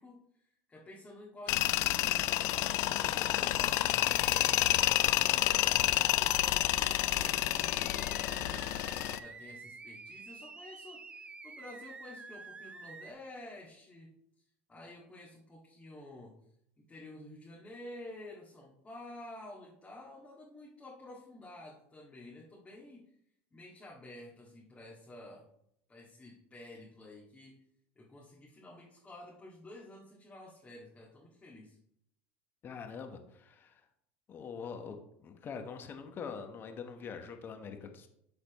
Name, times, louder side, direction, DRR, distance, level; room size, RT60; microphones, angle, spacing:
voice 1, 0.0-4.9 5.3-8.6 9.1-14.1 14.7-16.4 16.8-23.1 23.5-25.5 25.9-27.6 28.0-31.8, left 1 dB, 20° left, -5 dB, 1.8 m, -51 dB
Tools, 1.5-9.2, left 16 dB, 60° left, 0.4 m, -29 dB
sound 1, 2.5-13.1, right 4 dB, 15° right, 0.5 m, -49 dB
voice 2, 32.6-33.8 34.3-35.0 35.2-38.1, left 6 dB, 35° left, 6 dB, 1.1 m, -44 dB
12.0 x 4.1 x 3.0 m, 0.75 s
supercardioid pair, 100°, 6 cm